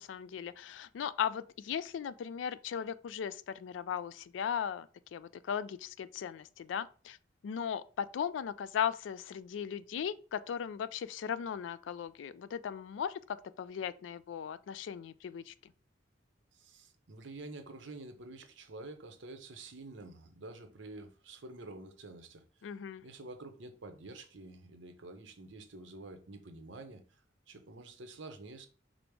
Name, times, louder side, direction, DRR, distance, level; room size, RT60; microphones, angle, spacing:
voice 1, 0.0-7.2 7.4-15.7 22.6-23.0, left 8 dB, 80° left, 0.3 m, -37 dB
voice 2, 16.5-22.4 23.0-27.2 27.5-28.7, right 2 dB, 85° right, 0.7 m, -48 dB
5.1 x 2.0 x 4.5 m
head